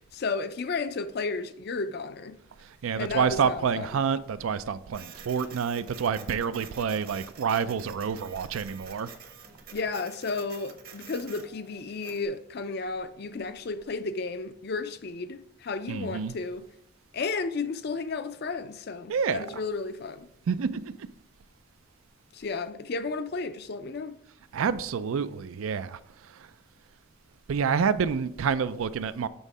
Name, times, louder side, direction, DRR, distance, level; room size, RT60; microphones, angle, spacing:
voice 1, 0.1-2.4 3.0-3.9 9.7-16.6 17.1-20.3 22.3-24.2, left 4 dB, 50° left, 0.4 m, -33 dB
voice 2, 2.8-9.1 15.9-16.3 19.1-19.5 20.5-21.1 24.5-26.0 27.5-29.3, right 6 dB, 80° right, 0.4 m, -28 dB
Printer, 4.9-12.3, right 6 dB, 45° right, 0.9 m, -48 dB
7.1 x 3.6 x 5.4 m
head